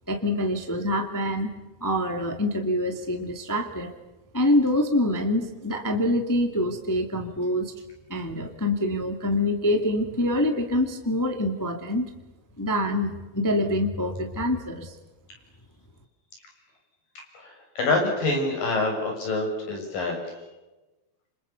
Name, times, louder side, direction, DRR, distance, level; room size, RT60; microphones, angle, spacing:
voice 1, 0.1-1.5 1.8-3.9 4.3-7.7 8.1-12.1 12.6-14.9, left 1 dB, 10° left, 4 dB, 1.1 m, -25 dB
voice 2, 17.8-20.2, left 2 dB, 60° left, 1 dB, 8.5 m, -26 dB
28.5 x 27.0 x 7.0 m, 1.1 s
omnidirectional pair, 4.5 m